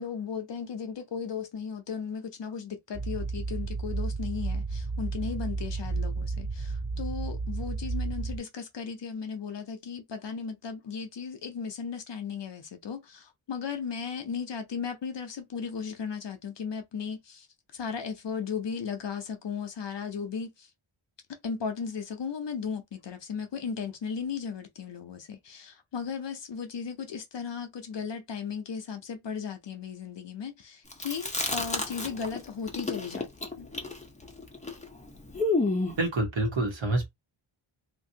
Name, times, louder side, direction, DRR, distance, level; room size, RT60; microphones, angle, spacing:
voice 1, 0.0-17.5 17.7-20.7 21.4-33.3 33.6-33.7, left 6 dB, 60° left, 0.7 m, -36 dB
sound 1, 2.9-8.4, right 3 dB, 10° right, 0.3 m, -32 dB
Chewing mastication, 30.9-32.4 32.7-36.0, left 2 dB, 15° left, 0.7 m, -30 dB
voice 2, 36.0-37.1, right 2 dB, 65° right, 1.3 m, -27 dB
2.9 x 2.5 x 2.7 m
wide cardioid pair, 85°, 48 cm